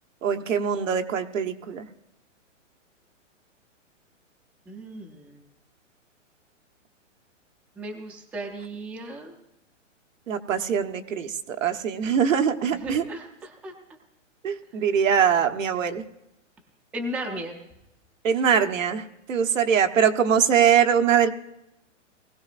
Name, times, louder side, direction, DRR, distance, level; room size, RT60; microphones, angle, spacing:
voice 1, 0.2-1.8 10.3-13.0 14.4-16.0 18.2-21.3, right 7 dB, 85° right, 6 dB, 1.2 m, -22 dB
voice 2, 4.7-5.4 7.8-9.3 12.7-13.7 14.8-14.9 16.9-17.6, right 1 dB, 5° right, 2 dB, 0.4 m, -36 dB
20.0 x 15.5 x 2.5 m, 0.87 s
hypercardioid pair, 150°, 38 cm